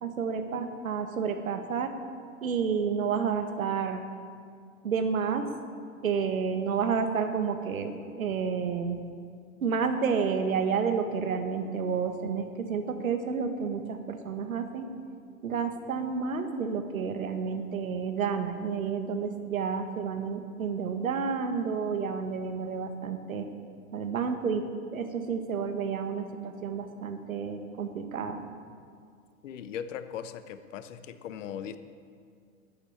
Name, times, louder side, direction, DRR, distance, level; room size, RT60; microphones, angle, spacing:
voice 1, 0.0-1.9 2.4-4.1 4.8-5.5 6.0-9.0 9.6-14.9 15.4-23.5 23.9-28.4, right 6 dB, 75° right, 7 dB, 1.6 m, -30 dB
voice 2, 29.4-31.8, left 8 dB, 60° left, 11 dB, 1.0 m, -39 dB
12.5 x 8.8 x 8.5 m, 2.2 s
hypercardioid pair, 105°, 42 cm